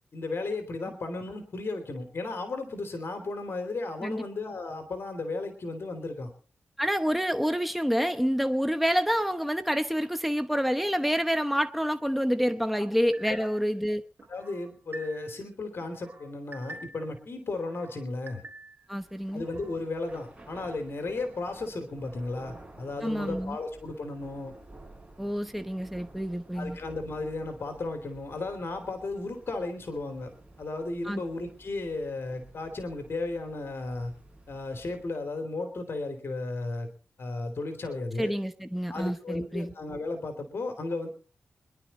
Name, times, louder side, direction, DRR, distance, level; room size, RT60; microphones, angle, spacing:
voice 1, 0.1-6.3 12.8-12.9 13.2-13.5 14.3-18.4 19.3-24.5 26.5-30.3 30.6-34.1 34.5-36.9 37.2-38.3 38.9-41.1, left 2 dB, 55° left, 3.0 m, -34 dB
voice 2, 6.8-14.0 18.9-19.4 23.0-23.6 25.2-26.8 31.1-31.2 38.2-39.7, equal, ahead, 0.9 m, -28 dB
sound 1, 13.1-13.7 14.2-15.4 15.8-17.1 17.5-18.9 19.3-19.8, right 1 dB, 45° right, 3.9 m, -47 dB
Thunder / Rain, 18.9-35.2, right 2 dB, 25° right, 7.2 m, -52 dB
24.5 x 11.5 x 4.2 m
wide cardioid pair, 95°, 5 cm